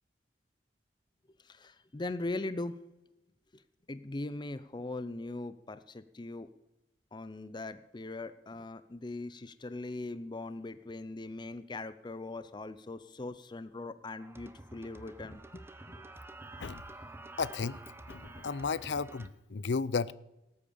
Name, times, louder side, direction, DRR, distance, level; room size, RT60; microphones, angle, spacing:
voice 1, 1.4-2.8 3.5-3.6 3.9-6.5 7.1-16.1, left 2 dB, 25° left, 0.5 m, -40 dB
sound 1, 14.2-19.3, right 2 dB, 15° right, 0.9 m, -49 dB
voice 2, 17.4-17.8 18.1-20.1, left 5 dB, 80° left, 0.6 m, -33 dB
18.5 x 8.7 x 7.0 m
head